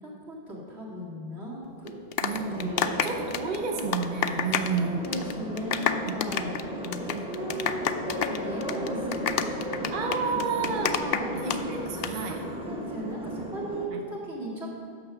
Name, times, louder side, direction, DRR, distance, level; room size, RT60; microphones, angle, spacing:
voice 1, 0.0-2.0 2.5-3.2 4.8-9.9 10.5-11.4 12.3-12.4 12.7-14.7, right 1 dB, 85° right, -5 dB, 2.4 m, -37 dB
sound 1, 1.9-4.8 5.0-5.3 5.6-11.6 11.9-12.1, left 8 dB, 70° left, 0.8 m, -28 dB
voice 2, 2.2-5.2 6.0-6.5 8.8-8.9 9.9-11.0 11.3-12.4 13.9-14.0, right 5 dB, 55° right, 3 dB, 0.9 m, -31 dB
sound 2, 2.3-13.9, equal, 5° right, 0.8 m, -35 dB
9.2 x 6.6 x 5.8 m, 2.3 s
omnidirectional pair, 1.1 m